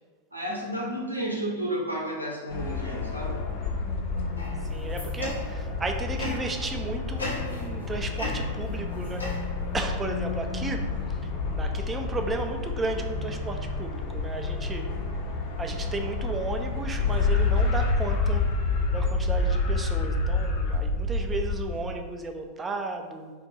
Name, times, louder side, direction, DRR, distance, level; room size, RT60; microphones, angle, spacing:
voice 1, 0.3-3.4, right 1 dB, 85° right, -3 dB, 0.7 m, -32 dB
sound 1, 2.5-21.8, left 3 dB, 50° left, 0.5 m, -29 dB
sound 2, 4.4-5.7 6.2-6.6 7.2-7.8 8.2-9.8, left 1 dB, 80° left, 0.8 m, -36 dB
voice 2, 4.7-9.5 9.7-14.8 15.6-18.4 18.9-23.3, right 3 dB, 15° right, 4 dB, 0.4 m, -34 dB
2.6 x 2.4 x 4.0 m, 1.4 s
figure-of-eight pair, 90°, 0 cm